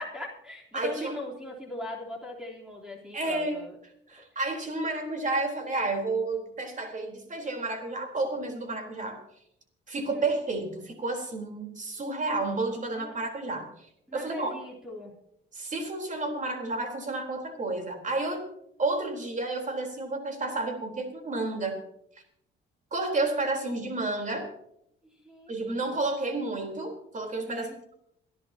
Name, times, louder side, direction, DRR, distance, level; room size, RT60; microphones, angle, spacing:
voice 1, 0.0-3.8 10.0-10.3 12.9-13.2 14.1-15.2 25.2-26.0 27.4-27.8, left 1 dB, 5° right, -3 dB, 3.6 m, -40 dB
voice 2, 0.7-1.2 3.1-3.6 4.1-9.2 9.9-13.9 14.1-14.5 15.5-18.4 18.8-21.8 22.9-24.5 25.5-27.9, right 2 dB, 40° right, 4 dB, 3.9 m, -31 dB
27.5 x 11.0 x 2.9 m, 0.73 s
cardioid pair, 90°, 20 cm